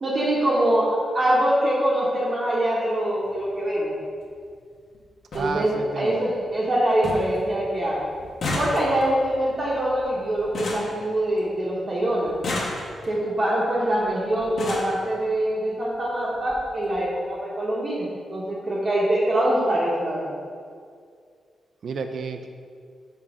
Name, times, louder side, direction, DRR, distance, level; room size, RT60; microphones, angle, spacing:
voice 1, 0.0-4.0 5.3-5.7 6.0-8.0 8.5-12.3 13.0-20.4, right 1 dB, 30° right, -6 dB, 1.1 m, -24 dB
sound 1, 3.2-3.4 4.6-4.7 4.9-5.0 5.3-5.5 6.0-6.4 6.7-6.8 7.0-7.4 7.7-11.7 12.2-13.2 14.0-14.1 14.4-15.0 15.9-16.0 16.4-16.6 16.8-17.0, left 2 dB, 55° left, 1.3 m, -32 dB
voice 2, 5.3-6.2 21.8-22.5, right 5 dB, 60° right, 6 dB, 0.5 m, -31 dB
6.1 x 4.0 x 6.0 m, 2.2 s
wide cardioid pair, 150°, 0 cm